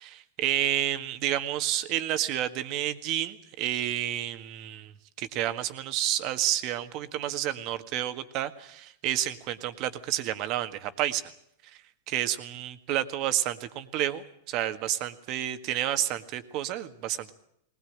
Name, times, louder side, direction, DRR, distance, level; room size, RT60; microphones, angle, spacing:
voice 1, 0.0-4.9 5.2-11.3 11.6-11.8 12.1-17.3, right 12 dB, 50° right, 10 dB, 1.7 m, -30 dB
20.0 x 19.5 x 8.8 m, 0.71 s
hypercardioid pair, 120°, 0 cm